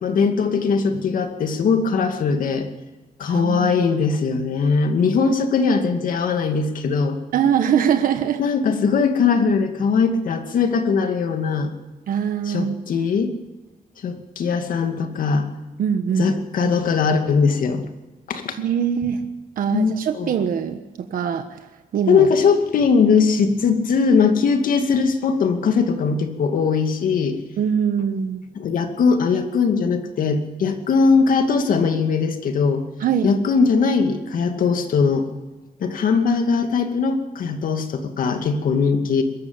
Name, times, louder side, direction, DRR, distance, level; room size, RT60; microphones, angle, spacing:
voice 1, 0.0-2.7 3.2-7.2 8.4-11.7 12.4-13.3 14.0-15.5 16.2-17.8 18.3-18.6 19.7-20.3 22.1-27.4 28.5-32.8 33.2-35.3 35.8-39.2, left 5 dB, 75° left, 6 dB, 2.4 m, -20 dB
voice 2, 3.3-3.7 7.3-8.4 12.1-12.8 15.8-16.7 18.6-19.2 19.6-20.8 21.1-21.6 21.9-22.3 27.6-28.4 33.0-33.3, right 8 dB, 80° right, 7 dB, 1.3 m, -22 dB
22.5 x 14.0 x 8.9 m, 1.2 s
wide cardioid pair, 150°, 14 cm